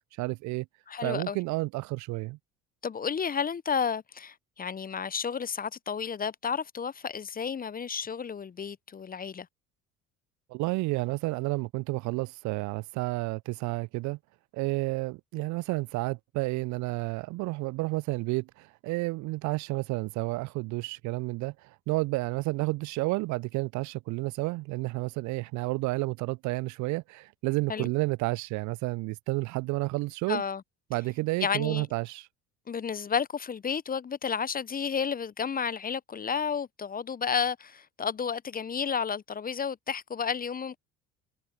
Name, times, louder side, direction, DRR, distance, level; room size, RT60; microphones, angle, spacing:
voice 1, 0.2-0.7 1.0-2.4 10.5-14.2 14.5-30.4 30.9-32.3, right 22 dB, 50° right, 0.6 m, -31 dB
voice 2, 0.9-1.4 2.8-9.5 27.7-27.9 30.3-30.6 31.4-31.9 32.7-40.8, left 6 dB, 20° left, 0.9 m, -31 dB
figure-of-eight pair, 60°, 39 cm